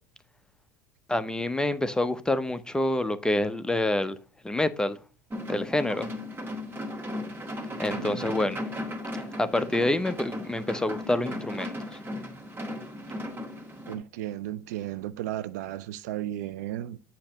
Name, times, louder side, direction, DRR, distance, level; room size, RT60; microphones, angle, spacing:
voice 1, 1.1-4.2 4.4-5.0 5.5-6.1 7.8-8.6 9.4-12.0, left 1 dB, 10° left, 0.6 m, -27 dB
sound 1, 5.3-14.0, left 1 dB, 20° right, 1.8 m, -36 dB
voice 2, 7.9-8.6 13.9-17.0, right 13 dB, 70° right, 0.5 m, -35 dB
8.4 x 2.9 x 6.3 m
hypercardioid pair, 75°, 9 cm